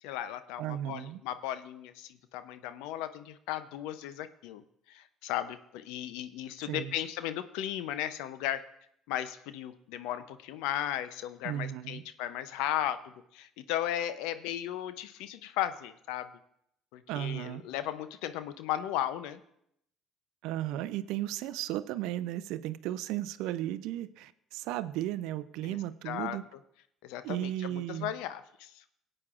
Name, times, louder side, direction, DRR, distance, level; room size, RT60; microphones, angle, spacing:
voice 1, 0.0-4.6 4.9-8.6 9.1-16.3 16.9-19.4 25.6-25.8 26.0-26.4 27.0-28.8, left 12 dB, 80° left, 13 dB, 0.5 m, -36 dB
voice 2, 0.6-1.2 6.7-6.9 11.4-12.0 17.1-17.6 20.4-26.4 27.2-28.1, right 13 dB, 75° right, 15 dB, 0.4 m, -35 dB
18.0 x 8.7 x 2.4 m, 0.74 s
hypercardioid pair, 65°, 0 cm